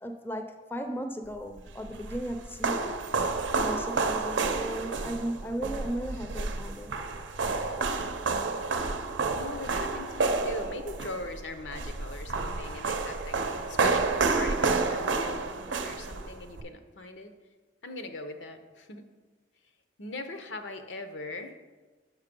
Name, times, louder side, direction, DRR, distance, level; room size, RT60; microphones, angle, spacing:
voice 1, 0.0-2.9 3.5-6.9, equal, 10° left, 5 dB, 0.5 m, -36 dB
sound 1, 1.6-16.6, right 3 dB, 80° right, 0.6 m, -30 dB
voice 2, 9.4-17.3 17.8-19.0 20.0-21.6, left 2 dB, 75° left, 7 dB, 0.8 m, -41 dB
7.4 x 5.8 x 5.2 m, 1.3 s
head